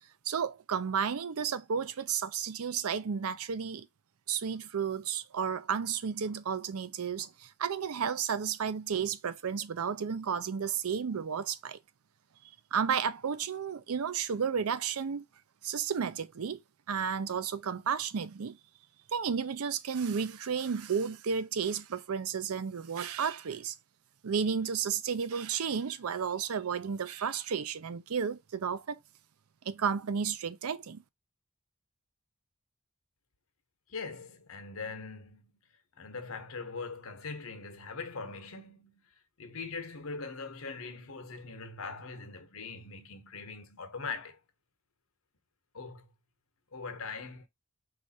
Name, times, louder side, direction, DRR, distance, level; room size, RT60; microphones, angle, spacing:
voice 1, 0.3-3.9 4.3-11.8 12.7-15.2 15.6-16.6 16.9-18.6 19.1-23.7 24.2-29.0 29.7-31.0, right 7 dB, 85° right, 0.5 m, -32 dB
voice 2, 33.9-35.5 36.0-39.1 39.4-44.4 45.7-46.0 46.7-47.5, left 4 dB, 75° left, 1.0 m, -41 dB
4.8 x 2.5 x 4.1 m
head